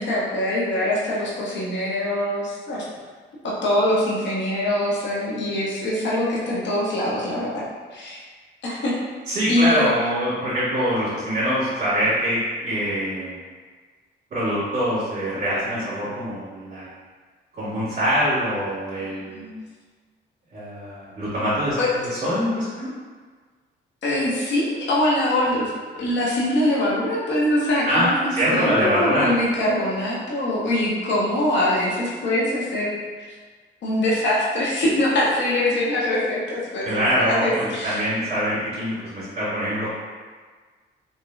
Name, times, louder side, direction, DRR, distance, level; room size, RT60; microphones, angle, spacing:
voice 1, 0.0-2.8 3.6-7.6 7.9-8.2 8.6-9.0 9.5-9.9 19.0-19.6 21.8-21.9 24.0-25.7 26.0-32.9 33.2-33.3 33.8-38.0, left 1 dB, 65° left, -6 dB, 0.9 m, -23 dB
voice 2, 9.3-13.4 14.3-16.9 17.5-19.5 20.5-22.9 27.9-28.1 28.3-29.3 36.8-39.9, equal, 40° right, -13 dB, 1.4 m, -24 dB
3.1 x 2.8 x 2.3 m, 1.5 s
cardioid pair, 90°, 20 cm